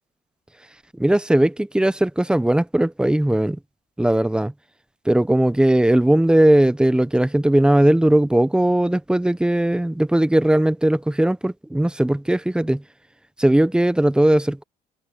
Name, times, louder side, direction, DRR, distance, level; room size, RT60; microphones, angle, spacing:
voice 1, 1.0-3.6 4.0-4.5 5.0-12.8 13.4-14.6, right 1 dB, 5° right, 0.9 m, -18 dB
cardioid pair, 110°, 17 cm